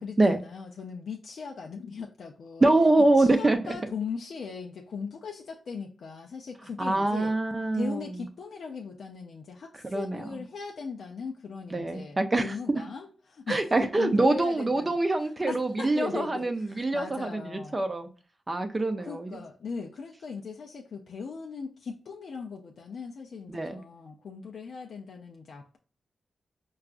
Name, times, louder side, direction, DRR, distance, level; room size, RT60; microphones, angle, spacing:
voice 1, 0.0-2.7 3.1-7.4 7.7-17.8 19.0-25.8, left 5 dB, 75° left, 0.4 m, -39 dB
voice 2, 2.6-3.8 6.8-8.0 9.9-10.2 11.7-12.5 13.5-18.1 18.5-19.4 23.5-23.8, right 2 dB, 30° right, 0.5 m, -25 dB
4.7 x 2.3 x 2.4 m
cardioid pair, 80°, 0 cm